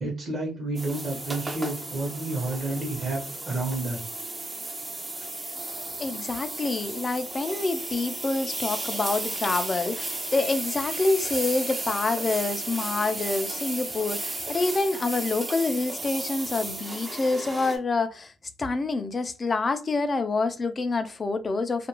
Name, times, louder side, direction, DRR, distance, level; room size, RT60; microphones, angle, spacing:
voice 1, 0.0-4.0, right 2 dB, 45° right, 1.0 m, -30 dB
sound 1, 0.8-17.8, right 2 dB, 25° right, 0.5 m, -34 dB
voice 2, 6.0-18.3 18.6-21.9, left 3 dB, 35° left, 0.4 m, -27 dB
2.4 x 2.2 x 2.9 m
cardioid pair, 90°, 0 cm